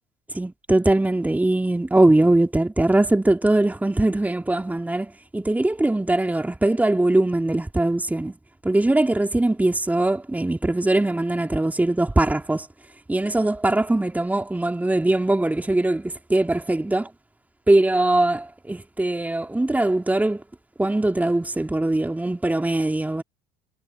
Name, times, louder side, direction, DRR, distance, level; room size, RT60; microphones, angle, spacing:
voice 1, 0.3-8.4 8.6-12.7 13.1-17.0 17.7-20.4 20.8-23.2, right 2 dB, 10° right, 2.8 m, -21 dB
figure-of-eight pair, 60°, 19 cm